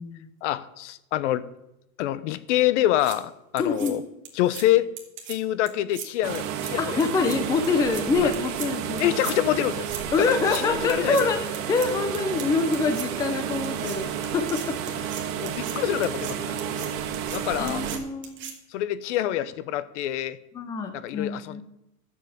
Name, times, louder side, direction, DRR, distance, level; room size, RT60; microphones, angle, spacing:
voice 1, 0.4-1.5 2.0-4.0 4.4-4.9 5.3-7.0 8.2-8.3 9.0-9.9 10.2-11.3 15.4-16.9 17.3-17.8 18.7-20.4 20.9-21.6, left 13 dB, 55° left, 16 dB, 0.8 m, -26 dB
sound 1, 2.8-3.2 3.6-3.9 4.2-4.6 5.0-5.4 5.7-6.1 6.3-6.7 7.0-7.4 7.6-8.0 8.3-8.7 9.0-9.3 9.6-10.0 10.3-10.6 10.9-11.2 11.5-11.9 12.1-12.5 12.7-13.1 13.6-14.0 14.2-15.7 16.0-16.3 16.6-16.9 17.1-17.4 17.7-18.0 18.2-18.5, right 8 dB, 25° right, 2.0 m, -38 dB
voice 2, 3.6-4.0 6.8-9.1 10.1-14.9 17.6-18.5 20.5-21.6, left 4 dB, 10° left, 8 dB, 0.5 m, -26 dB
sound 2, 6.2-18.0, right 8 dB, 60° right, 2.0 m, -31 dB
12.0 x 7.4 x 7.1 m, 0.86 s
supercardioid pair, 145°, 44 cm